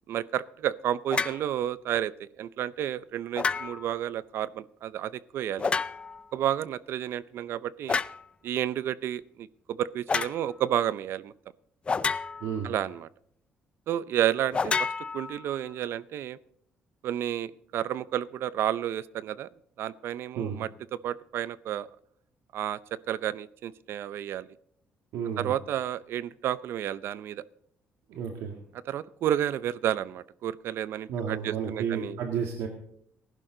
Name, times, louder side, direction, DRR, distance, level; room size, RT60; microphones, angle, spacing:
voice 1, 0.1-5.7 6.3-8.0 8.4-11.3 12.6-13.1 13.9-14.7 15.1-16.4 17.0-19.5 19.8-20.7 21.0-21.9 22.5-22.8 23.1-24.5 25.4-27.4 28.9-32.2, right 11 dB, 65° right, 18 dB, 0.6 m, -31 dB
sound 1, 1.1-1.4 3.3-4.0 5.6-6.2 7.9-8.2 10.1-10.4 11.9-12.6 14.5-15.7, left 5 dB, 25° left, 0.4 m, -29 dB
voice 2, 12.4-12.7 20.3-20.6 25.1-25.5 28.1-28.6 31.1-32.7, right 7 dB, 90° right, 3 dB, 1.9 m, -32 dB
19.0 x 11.5 x 3.9 m, 0.69 s
cardioid pair, 140°, 4 cm